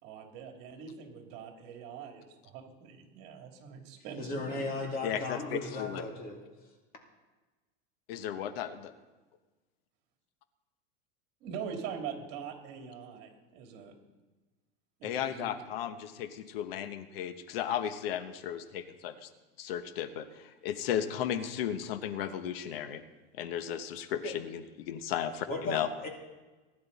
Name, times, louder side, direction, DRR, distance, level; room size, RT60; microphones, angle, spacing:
voice 1, 0.0-4.7 11.4-13.9 15.0-15.6, right 7 dB, 50° right, 2 dB, 2.9 m, -43 dB
voice 2, 4.2-6.4 24.2-24.3 25.5-26.1, left 2 dB, 30° left, 1 dB, 2.6 m, -36 dB
voice 3, 5.0-6.0 8.1-8.9 15.0-19.3 19.6-23.0 23.3-25.9, left 9 dB, 75° left, 10 dB, 1.1 m, -35 dB
19.5 x 11.0 x 4.1 m, 1.2 s
supercardioid pair, 145°, 29 cm